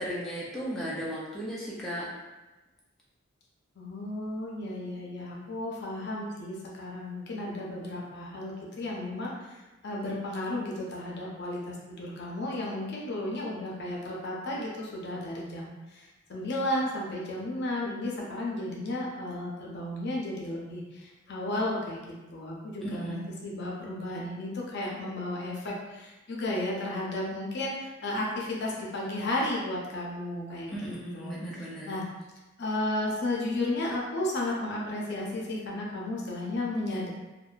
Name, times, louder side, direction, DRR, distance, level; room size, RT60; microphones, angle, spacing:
voice 1, 0.0-2.1 22.8-23.4 30.7-31.9, equal, ahead, -8 dB, 0.4 m, -36 dB
voice 2, 3.8-22.0 22.3-23.2 23.4-31.3 31.8-32.0 32.6-37.1, left 1 dB, 60° left, -3 dB, 0.5 m, -33 dB
2.7 x 2.1 x 2.3 m, 1.1 s
head